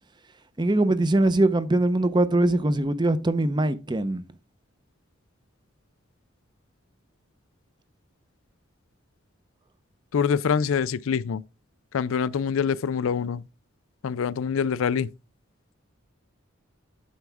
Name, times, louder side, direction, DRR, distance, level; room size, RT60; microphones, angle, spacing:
voice 1, 0.6-4.2, right 2 dB, 20° right, 0.7 m, -22 dB
voice 2, 10.1-11.4 11.9-13.4 14.0-15.1, left 6 dB, 75° left, 0.4 m, -25 dB
9.4 x 7.2 x 3.5 m
head